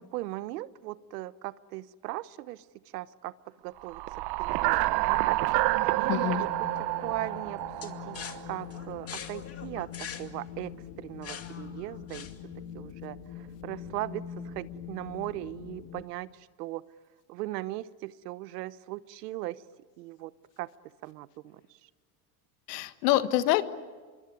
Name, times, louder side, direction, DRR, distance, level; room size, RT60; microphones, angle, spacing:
voice 1, 0.0-2.6 2.9-3.3 3.6-4.0 4.4-4.8 5.1-5.3 5.9-6.7 7.0-8.2 8.5-9.9 10.2-10.7 11.0-12.3 12.7-16.8 17.3-19.6 20.0-20.3 20.6-20.7 21.0-21.6, right 17 dB, 90° right, 17 dB, 1.0 m, -38 dB
sound 1, 3.9-8.5, right 18 dB, 55° right, 0.9 m, -28 dB
Wind, 6.0-16.0, left 9 dB, 45° left, 1.9 m, -43 dB
voice 2, 6.1-6.4 22.7-23.6, left 15 dB, 85° left, 11 dB, 1.6 m, -25 dB
sound 2, 7.8-12.7, left 7 dB, 30° left, 2.3 m, -43 dB
26.0 x 23.0 x 9.8 m, 1.5 s
supercardioid pair, 110°, 46 cm